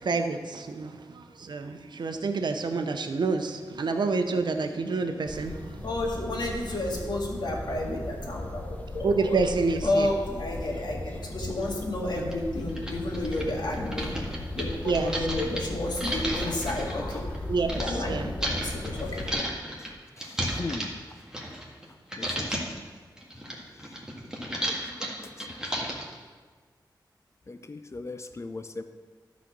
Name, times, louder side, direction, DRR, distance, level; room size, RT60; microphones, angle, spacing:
voice 1, 0.0-5.8 9.0-10.1 12.2-12.3 14.8-15.1 17.5-18.3, right 4 dB, 70° right, 6 dB, 0.8 m, -28 dB
sound 1, 5.3-19.3, left 1 dB, 20° left, 0.9 m, -37 dB
voice 2, 5.8-9.4 9.8-14.2 14.5-19.5, left 1 dB, 65° left, -1 dB, 1.9 m, -31 dB
sound 2, 11.6-11.7 12.3-12.4 12.7-17.9 18.4-21.9 22.1-22.8 23.2-26.2, right 1 dB, 10° right, 1.7 m, -33 dB
voice 3, 20.2-21.0 22.2-22.5 24.6-25.4 27.5-28.8, left 3 dB, 35° left, 9 dB, 0.6 m, -39 dB
12.0 x 4.1 x 6.1 m, 1.5 s
wide cardioid pair, 75°, 8 cm